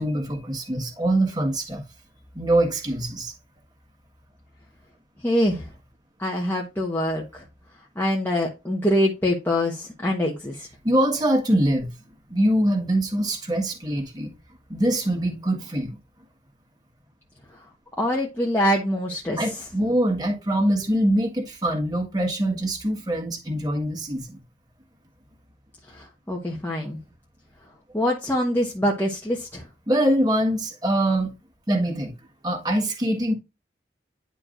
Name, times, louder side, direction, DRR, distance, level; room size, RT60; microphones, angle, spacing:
voice 1, 0.0-1.8 2.3-3.3 10.8-11.9 12.3-14.3 14.7-16.0 19.4-24.4 29.9-31.3 31.7-32.1 32.4-33.3, right 1 dB, 20° right, 1.6 m, -23 dB
voice 2, 5.2-5.7 6.2-7.4 7.9-10.7 17.5-17.6 18.0-19.6 25.9-27.0 27.9-29.7, left 1 dB, 10° left, 1.1 m, -24 dB
10.5 x 4.5 x 2.6 m
head